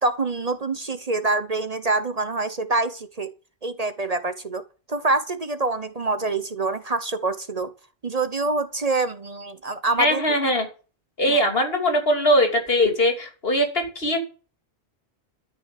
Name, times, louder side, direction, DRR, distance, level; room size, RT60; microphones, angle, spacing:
voice 1, 0.0-3.3 3.6-7.7 8.0-10.4 11.3-11.4, right 3 dB, 40° right, 1.0 m, -26 dB
voice 2, 10.0-10.7 11.2-14.2, equal, 70° left, 3.2 m, -21 dB
13.0 x 6.2 x 8.4 m
omnidirectional pair, 1.1 m